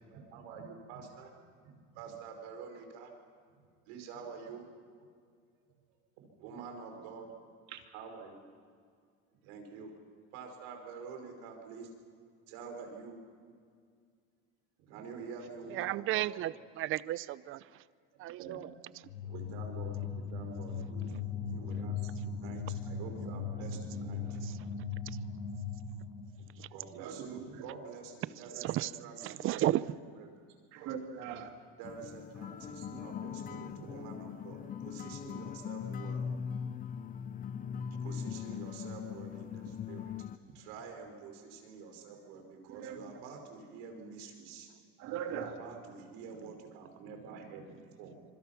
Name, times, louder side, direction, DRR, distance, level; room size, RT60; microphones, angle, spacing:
voice 1, 0.1-1.3 1.6-3.1 3.9-4.7 6.4-7.3 7.9-8.4 9.4-9.9 10.3-11.9 12.5-13.2 14.8-16.3 18.4-18.6 19.2-24.9 26.4-30.4 31.8-36.3 38.0-40.1 40.5-44.7 45.3-48.3, right 5 dB, 85° right, 5.3 m, -47 dB
voice 2, 15.7-17.8 18.2-18.7 24.4-24.5 25.1-25.2 26.6-26.7 28.6-28.9 29.2-29.9, right 14 dB, 45° right, 0.6 m, -34 dB
sound 1, 19.0-26.4, left 5 dB, 85° left, 5.7 m, -38 dB
voice 3, 27.0-27.7 30.7-31.5 33.9-34.0 39.6-39.7 40.5-40.6 42.6-43.2 45.0-45.6, right 8 dB, 65° right, 2.8 m, -41 dB
sound 2, 31.8-40.4, left 7 dB, 30° left, 0.7 m, -40 dB
26.0 x 24.5 x 5.9 m
cardioid pair, 130°, 29 cm